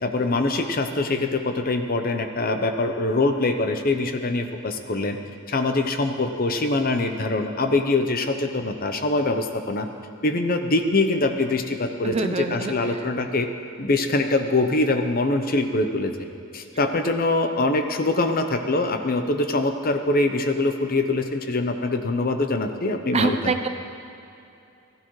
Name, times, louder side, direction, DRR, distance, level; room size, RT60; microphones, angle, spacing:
voice 1, 0.0-5.2 5.5-9.9 10.2-13.5 13.8-16.1 16.5-23.5, left 2 dB, 45° left, 6 dB, 0.7 m, -23 dB
voice 2, 12.0-12.7 23.1-23.7, right 3 dB, 30° right, 7 dB, 0.6 m, -24 dB
15.5 x 14.5 x 3.2 m, 2.6 s
head